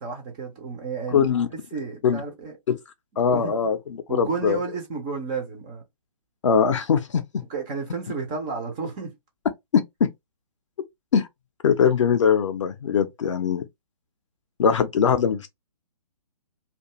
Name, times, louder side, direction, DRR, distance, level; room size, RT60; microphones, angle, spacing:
voice 1, 0.0-2.6 3.2-3.5 4.1-5.8 7.5-9.1, right 4 dB, 10° right, 0.3 m, -32 dB
voice 2, 1.1-1.5 2.0-2.2 2.7-2.8 3.2-4.6 6.4-7.4 9.7-10.1 11.1-11.3 11.6-13.7 14.6-15.5, left 7 dB, 50° left, 0.4 m, -21 dB
2.5 x 2.2 x 2.8 m
figure-of-eight pair, 135°, 20 cm